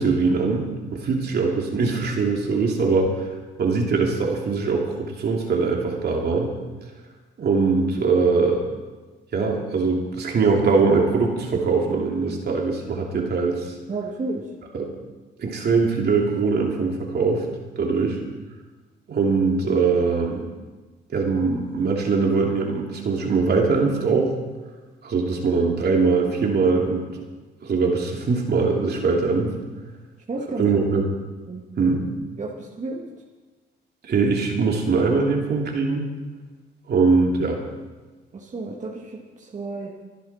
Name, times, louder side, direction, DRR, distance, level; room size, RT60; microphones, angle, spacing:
voice 1, 0.0-3.3 3.6-6.5 7.4-8.6 9.3-13.7 14.7-14.9 15.4-17.4 17.8-18.2 19.1-20.5 21.1-24.3 25.0-27.1 27.6-29.5 30.6-31.0 31.8-32.0 34.1-36.1 36.9-37.6, right 4 dB, 55° right, 0 dB, 2.9 m, -22 dB
voice 2, 13.9-14.4 30.3-30.7 31.5-31.6 32.4-33.0 38.3-39.9, right 3 dB, 35° right, -2 dB, 2.2 m, -32 dB
25.5 x 10.0 x 4.4 m, 1.3 s
cardioid pair, 90°, 20 cm